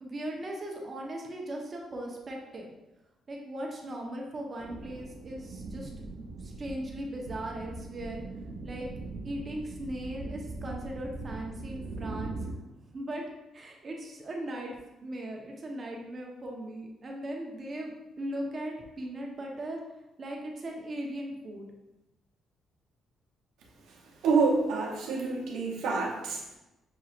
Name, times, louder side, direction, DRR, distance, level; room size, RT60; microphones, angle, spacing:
voice 1, 0.0-2.7 3.3-8.2 8.6-8.9 9.2-13.2 13.5-19.8 20.2-21.7, right 1 dB, 40° right, 0 dB, 0.8 m, -38 dB
sound 1, 4.6-12.5, right 3 dB, 65° right, 0.6 m, -41 dB
voice 2, 24.2-26.6, right 4 dB, 90° right, -2 dB, 0.9 m, -27 dB
6.0 x 2.8 x 2.5 m, 0.99 s
cardioid pair, 90°, 0 cm